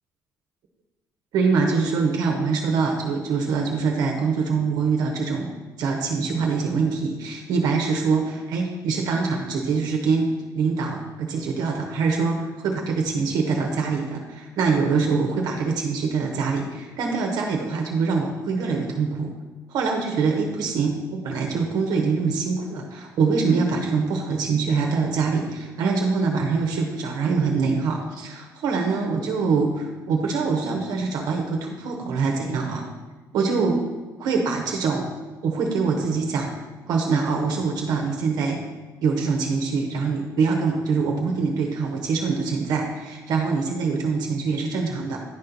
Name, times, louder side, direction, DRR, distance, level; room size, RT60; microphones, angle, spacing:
voice 1, 1.3-5.5 5.8-10.3 10.5-19.3 19.7-32.8 33.3-33.8 34.2-35.1 35.4-36.5 36.9-38.6 39.0-45.2, right 4 dB, 65° right, 1 dB, 0.9 m, -24 dB
10.5 x 4.3 x 3.9 m, 1.2 s
cardioid pair, 155°, 7 cm